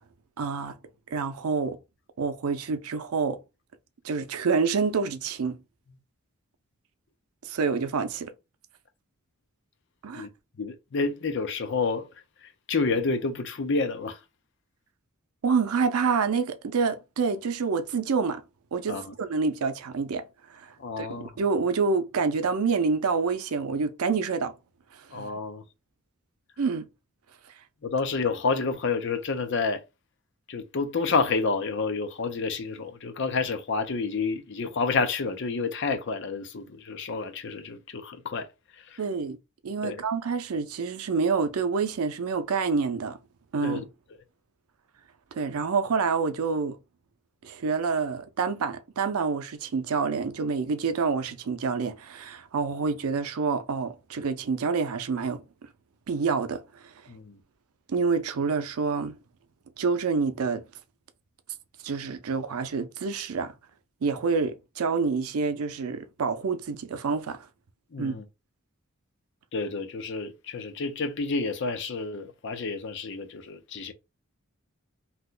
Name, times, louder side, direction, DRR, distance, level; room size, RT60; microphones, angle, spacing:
voice 1, 0.4-0.8 1.1-1.8 2.2-3.4 4.0-5.6 7.4-8.3 10.0-10.3 15.4-18.4 18.7-20.2 20.5-24.5 25.1-25.3 26.6-26.9 39.0-39.4 39.6-43.2 43.5-43.8 45.3-46.8 47.4-55.4 56.1-56.6 57.9-59.1 59.8-60.6 61.8-63.5 64.0-67.5 68.0-68.1, right 5 dB, 90° right, 0.5 m, -27 dB
voice 2, 10.6-12.1 12.4-14.2 18.9-19.1 20.8-21.4 25.1-25.6 27.8-29.8 30.5-38.5 38.7-39.0 39.8-40.0 43.6-43.8 57.1-57.4 67.9-68.2 69.5-73.9, left 4 dB, 55° left, 0.5 m, -29 dB
2.8 x 2.1 x 3.7 m
head